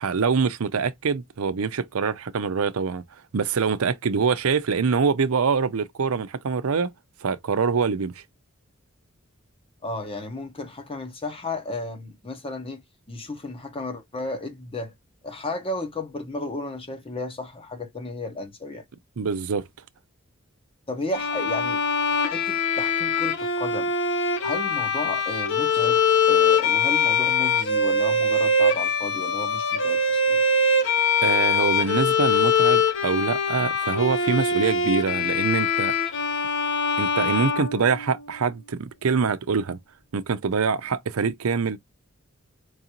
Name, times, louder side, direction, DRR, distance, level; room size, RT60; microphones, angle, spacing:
voice 1, 0.0-3.0 3.3-6.9 7.2-8.2 19.2-19.7 31.2-35.9 37.0-39.8 40.1-41.8, right 5 dB, 85° right, 0.6 m, -24 dB
voice 2, 9.8-12.8 13.1-14.9 15.2-18.8 20.9-21.8 22.2-23.9 24.4-26.0 26.3-30.4, left 2 dB, 25° left, 0.8 m, -33 dB
Bowed string instrument, 21.1-38.3, left 4 dB, 60° left, 1.1 m, -23 dB
4.6 x 2.5 x 2.9 m
head